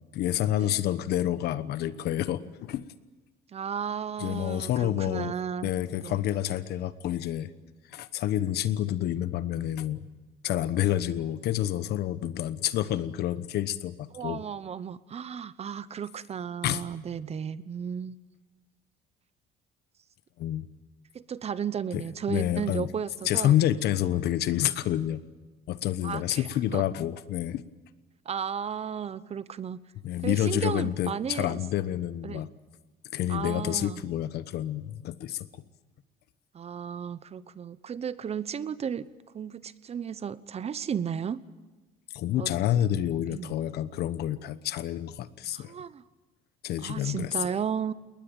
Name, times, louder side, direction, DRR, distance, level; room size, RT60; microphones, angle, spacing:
voice 1, 0.1-2.9 4.2-5.3 5.6-7.5 7.9-10.0 10.4-14.4 16.6-16.8 20.4-20.7 21.9-22.9 23.2-25.2 25.7-27.6 30.0-32.5 33.1-35.5 42.1-45.7 46.6-47.6, left 12 dB, 75° left, 14 dB, 1.1 m, -28 dB
voice 2, 3.5-5.7 6.0-6.2 14.1-18.2 21.1-23.6 26.0-26.5 26.7-26.8 28.2-29.8 30.2-31.6 32.2-32.5 33.3-34.0 36.5-39.1 39.3-41.4 42.4-42.5 43.3-43.6 45.5-46.0 46.8-47.9, right 7 dB, 40° right, 17 dB, 0.9 m, -34 dB
21.0 x 19.5 x 8.9 m, 1.2 s
cardioid pair, 110°, 17 cm